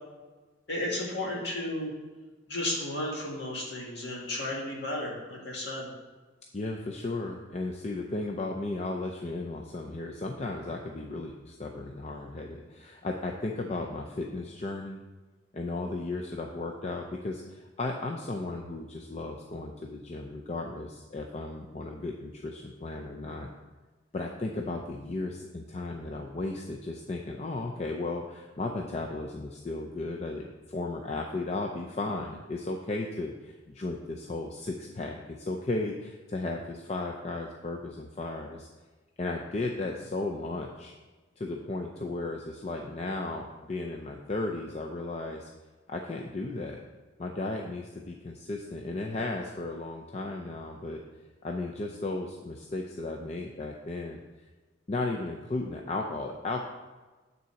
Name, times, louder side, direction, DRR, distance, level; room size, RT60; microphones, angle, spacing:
voice 1, 0.7-1.9 2.5-5.9, left 1 dB, 60° left, -3 dB, 2.0 m, -33 dB
voice 2, 6.5-15.0 15.5-23.5 24.1-38.7 39.2-40.9 41.4-45.5 45.9-46.8 47.2-51.0 51.4-54.2 54.9-56.6, left 2 dB, 35° left, 1 dB, 0.5 m, -35 dB
9.2 x 4.1 x 5.7 m, 1.3 s
head